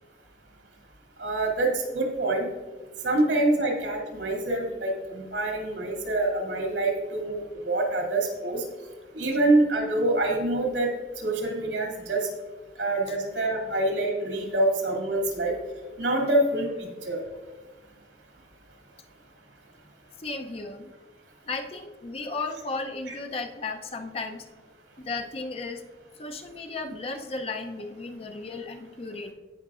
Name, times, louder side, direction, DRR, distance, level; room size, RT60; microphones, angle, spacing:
voice 1, 1.2-2.5 3.0-8.6 9.1-10.9 11.2-12.2 12.8-15.5 16.0-17.2 23.1-23.2, right 2 dB, 90° right, -1 dB, 2.5 m, -26 dB
voice 2, 20.2-20.9 21.5-24.5 25.0-25.8 26.2-29.3, left 3 dB, 30° left, 5 dB, 0.6 m, -34 dB
17.0 x 5.8 x 2.4 m, 1.3 s
head